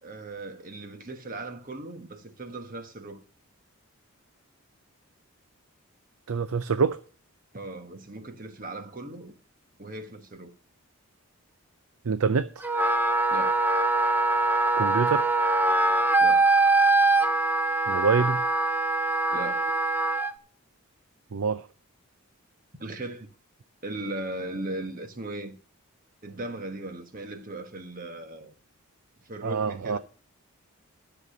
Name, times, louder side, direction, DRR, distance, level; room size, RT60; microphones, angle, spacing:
voice 1, 0.0-3.2 7.5-9.4 9.8-10.5 13.3-13.6 16.2-16.5 19.3-19.7 22.8-23.3 23.8-25.5 26.2-28.5 29.2-30.0, right 2 dB, 40° right, 1.2 m, -38 dB
voice 2, 6.3-7.0 12.0-12.6 14.8-15.3 17.9-18.4 21.3-21.7 29.4-30.0, right 5 dB, 75° right, 0.5 m, -26 dB
Wind instrument woodwind instrument, 12.6-20.3, right 2 dB, 10° right, 0.5 m, -23 dB
12.5 x 6.9 x 6.4 m
head